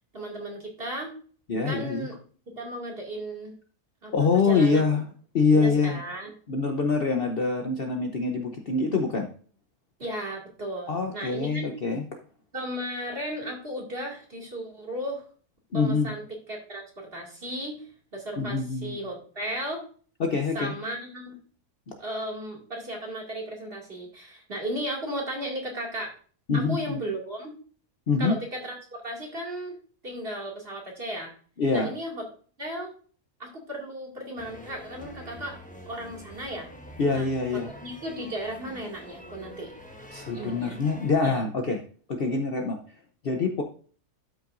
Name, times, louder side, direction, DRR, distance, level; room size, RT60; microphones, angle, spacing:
voice 1, 0.1-1.1 1.6-2.1 2.5-3.5 4.0-4.1 4.4-4.8 5.5-6.3 10.0-11.7 12.5-15.3 15.7-16.2 16.5-17.9 18.1-19.8 20.5-21.4 22.0-26.1 26.5-27.5 28.2-29.8 30.0-31.3 31.7-32.2 32.6-32.9 33.4-35.6 35.9-36.7 37.1-39.7 40.3-40.7 41.2-41.4, right 1 dB, 40° right, -1 dB, 2.5 m, -35 dB
voice 2, 1.5-2.1 4.1-5.0 5.3-6.0 6.5-9.3 10.9-12.0 15.7-16.1 18.4-19.0 20.2-20.7 21.9-22.0 26.5-27.0 28.1-28.3 31.6-31.9 37.0-37.7 40.1-41.8 42.1-42.8 43.2-43.6, left 4 dB, 50° left, 3 dB, 0.9 m, -25 dB
sound 1, 34.4-41.1, left 1 dB, 5° left, 0.9 m, -45 dB
12.5 x 5.7 x 2.6 m, 0.42 s
omnidirectional pair, 1.5 m